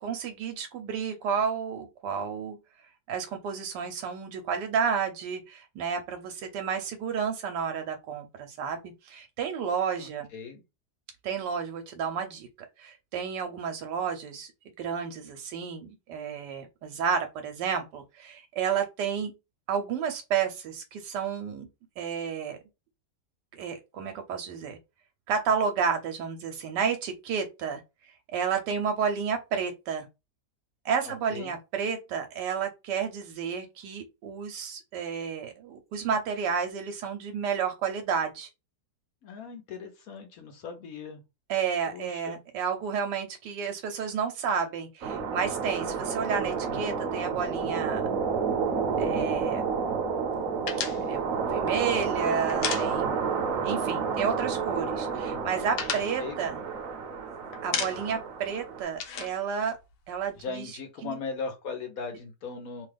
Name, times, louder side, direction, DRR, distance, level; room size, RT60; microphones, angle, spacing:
voice 1, 0.0-2.6 3.1-10.3 11.2-12.5 12.8-14.5 14.8-19.3 19.7-21.7 22.0-22.6 23.5-24.8 25.3-27.8 28.3-30.1 30.8-38.5 41.5-48.1 49.0-49.7 51.1-53.3 53.6-56.6 57.6-59.8 60.1-60.7 61.0-61.2, right 6 dB, 85° right, 1.2 m, -31 dB
voice 2, 10.0-10.6 31.0-31.5 39.2-41.2 41.9-42.4 55.9-56.4 60.3-62.9, left 4 dB, 65° left, 1.2 m, -38 dB
sound 1, 45.0-58.8, right 5 dB, 65° right, 1.0 m, -30 dB
sound 2, 50.7-53.4 53.7-53.9 54.2-54.9 55.2-57.2 57.5-58.3 58.5-60.4, left 7 dB, 85° left, 1.3 m, -35 dB
3.1 x 2.3 x 3.3 m
omnidirectional pair, 1.8 m